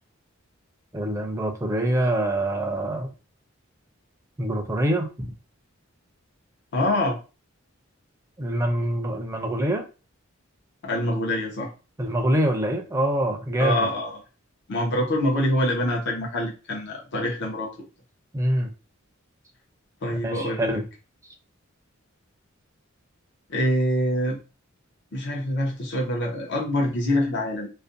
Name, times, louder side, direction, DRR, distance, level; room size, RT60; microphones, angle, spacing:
voice 1, 0.9-3.1 4.4-5.3 8.4-9.8 12.0-13.9 18.3-18.7 20.2-20.8, right 1 dB, 15° right, 3 dB, 0.4 m, -25 dB
voice 2, 6.7-7.2 10.8-11.7 13.6-14.2 14.7-17.7 20.0-20.8 23.5-24.4 25.1-27.7, left 1 dB, 60° left, 0 dB, 0.7 m, -25 dB
2.4 x 2.1 x 2.5 m, 0.32 s
head